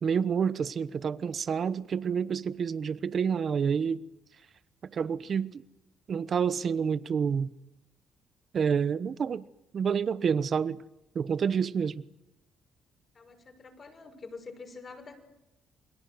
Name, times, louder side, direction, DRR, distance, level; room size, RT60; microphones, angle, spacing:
voice 1, 0.0-4.0 4.8-5.6 6.1-7.5 8.5-9.4 9.7-10.8 11.1-12.0, right 6 dB, 50° right, 1.1 m, -28 dB
voice 2, 13.1-15.2, left 4 dB, 40° left, 6.1 m, -46 dB
29.5 x 22.0 x 8.0 m
cardioid pair, 90°, 0 cm